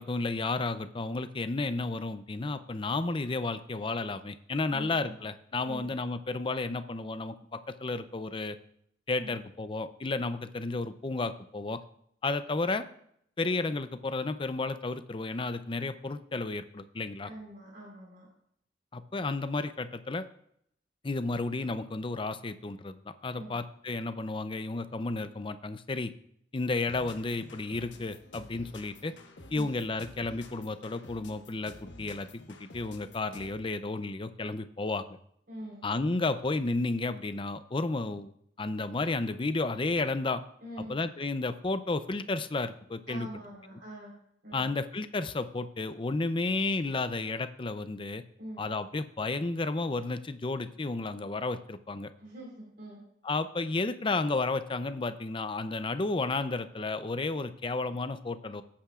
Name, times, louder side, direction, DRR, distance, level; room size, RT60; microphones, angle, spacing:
voice 1, 0.0-8.6 9.1-11.8 12.2-12.9 13.4-17.3 18.9-20.3 21.0-23.0 23.2-26.1 26.5-29.1 29.5-35.1 35.8-38.3 38.6-40.4 40.9-43.3 44.5-48.2 48.6-52.1 53.2-58.6, left 3 dB, 30° left, 11 dB, 0.5 m, -32 dB
voice 2, 4.7-5.2 5.6-5.9 9.2-9.4 17.2-18.3 23.3-23.6 29.5-29.7 35.5-35.9 40.6-41.0 43.1-44.1 44.4-44.6 48.4-48.6 52.2-53.0, right 1 dB, 60° right, -4 dB, 4.1 m, -44 dB
sound 1, 26.9-33.7, left 2 dB, 90° left, 1.2 m, -50 dB
17.0 x 8.6 x 2.4 m, 0.71 s
head